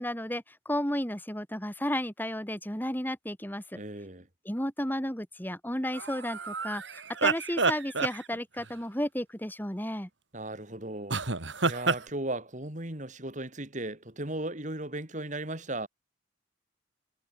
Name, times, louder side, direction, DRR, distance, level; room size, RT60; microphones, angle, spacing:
voice 1, 0.0-3.8 4.4-10.1, left 1 dB, 10° left, 5.1 m, -33 dB
voice 2, 3.7-4.3 10.3-11.2 11.6-15.9, right 1 dB, 40° right, 3.9 m, -36 dB
sound 1, 5.9-8.7 11.1-12.0, right 4 dB, 75° right, 3.2 m, -29 dB
head